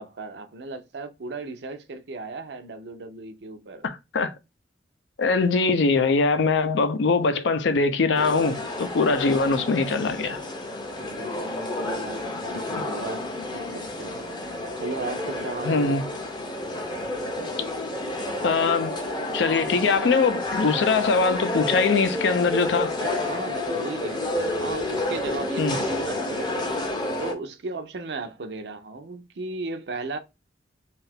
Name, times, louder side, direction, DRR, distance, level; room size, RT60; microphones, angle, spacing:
voice 1, 0.0-3.8 8.1-8.2 11.0-14.2 14.8-16.2 23.0-24.3 24.6-26.8 27.2-30.2, right 3 dB, 65° right, 0.5 m, -36 dB
voice 2, 3.8-4.3 5.2-10.4 15.6-16.0 18.4-18.9 19.3-22.9 25.6-25.8, left 4 dB, 80° left, 0.5 m, -22 dB
sound 1, 8.1-27.3, left 1 dB, 25° left, 0.6 m, -30 dB
2.7 x 2.4 x 3.4 m
head